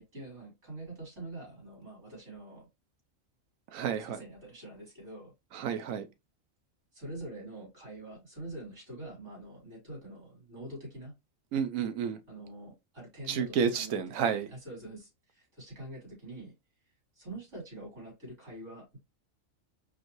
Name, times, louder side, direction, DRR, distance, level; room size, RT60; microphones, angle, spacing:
voice 1, 0.0-2.7 3.8-5.3 6.9-11.1 12.3-14.0 14.5-16.5 17.2-19.0, right 1 dB, 65° right, 3.6 m, -45 dB
voice 2, 3.7-4.2 5.5-6.1 11.5-12.2 13.3-14.5, right 7 dB, 90° right, 1.1 m, -30 dB
5.0 x 2.6 x 2.9 m
omnidirectional pair, 1.4 m